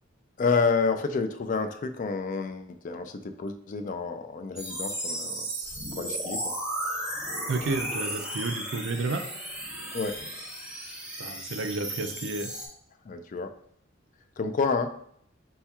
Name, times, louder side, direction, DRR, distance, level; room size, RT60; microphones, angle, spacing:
voice 1, 0.4-5.5 5.9-6.5 9.9-10.2 13.0-13.6 14.4-15.0, left 4 dB, 40° left, 8 dB, 0.3 m, -29 dB
sound 1, 4.6-12.7, right 1 dB, 5° right, 1.1 m, -35 dB
voice 2, 7.5-9.3 11.2-12.5, right 3 dB, 65° right, 8 dB, 0.4 m, -31 dB
4.4 x 4.2 x 2.3 m, 0.65 s
head